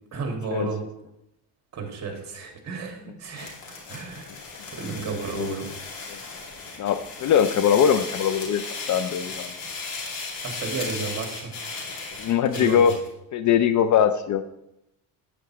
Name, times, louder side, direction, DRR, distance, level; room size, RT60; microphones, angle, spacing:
voice 1, 0.1-0.8 1.7-3.5 3.9-4.4 4.7-5.7 10.4-11.5 12.5-12.9, right 4 dB, 40° right, 2 dB, 2.2 m, -32 dB
sound 1, 3.2-13.1, left 4 dB, 75° left, 2.8 m, -36 dB
voice 2, 6.8-9.5 12.2-13.0 13.3-14.4, left 8 dB, 45° left, 11 dB, 0.5 m, -22 dB
8.8 x 8.4 x 3.1 m, 0.85 s
cardioid pair, 125°, 42 cm